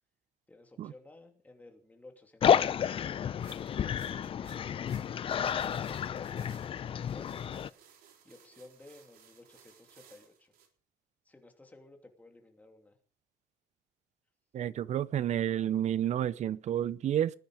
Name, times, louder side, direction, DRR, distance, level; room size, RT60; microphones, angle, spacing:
voice 1, 0.5-3.3 8.2-10.5 11.2-13.0, left 2 dB, 10° left, 2.9 m, -56 dB
sound 1, 2.4-7.7, left 8 dB, 40° left, 0.6 m, -30 dB
sound 2, 3.4-10.7, right 8 dB, 80° right, 3.7 m, -60 dB
voice 2, 14.5-17.3, right 10 dB, 50° right, 0.7 m, -30 dB
19.5 x 10.5 x 5.0 m
cardioid pair, 150°, 15 cm